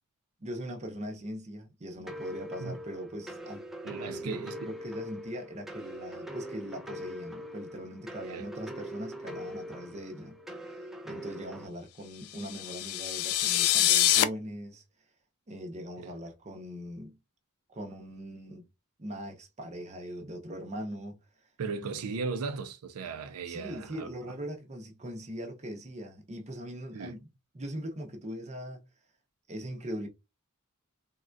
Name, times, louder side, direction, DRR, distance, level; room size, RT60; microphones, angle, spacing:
voice 1, 0.4-3.6 4.0-10.4 10.7-14.8 15.5-17.2 17.7-18.7 19.0-21.2 21.8-21.9 23.5-27.3 27.5-28.8 29.5-30.1, equal, 30° right, 0.7 m, -40 dB
sound 1, 2.1-11.7, equal, ahead, 0.3 m, -42 dB
voice 2, 3.8-4.7 8.2-8.5 16.0-16.2 21.6-24.1 26.9-27.2, right 4 dB, 75° right, 0.4 m, -37 dB
sound 2, 12.3-14.2, left 12 dB, 85° left, 0.4 m, -25 dB
3.5 x 2.2 x 2.4 m
head